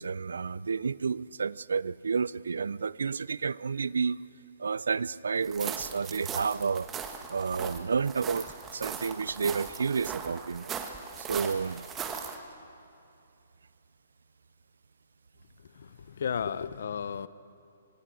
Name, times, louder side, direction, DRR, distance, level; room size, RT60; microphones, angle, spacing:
voice 1, 0.0-4.2 4.6-6.9 7.3-8.5 8.7-10.7 11.2-11.9, right 5 dB, 80° right, 21 dB, 0.4 m, -30 dB
sound 1, 5.4-12.4, right 6 dB, 20° right, 1.6 m, -39 dB
voice 2, 15.6-17.3, left 7 dB, 65° left, 16 dB, 0.8 m, -34 dB
25.0 x 21.0 x 6.2 m, 2.6 s
hypercardioid pair, 135°, 0 cm